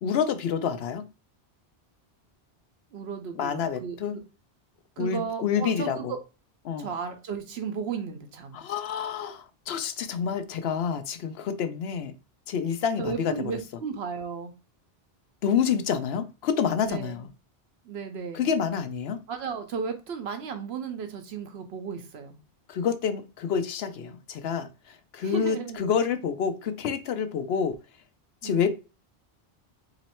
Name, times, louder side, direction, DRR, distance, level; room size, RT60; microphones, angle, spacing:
voice 1, 0.0-1.0 3.4-4.1 5.0-6.1 6.6-6.9 8.5-12.1 12.5-13.3 15.4-17.3 18.3-19.2 22.7-27.8 28.4-28.7, left 7 dB, 80° left, 0.8 m, -28 dB
voice 2, 2.9-4.0 5.0-6.2 6.8-8.6 13.0-14.5 16.8-17.3 17.8-18.5 19.3-22.4 25.2-25.8 28.4-28.7, right 6 dB, 80° right, 1.0 m, -34 dB
3.1 x 2.9 x 4.2 m
omnidirectional pair, 1.1 m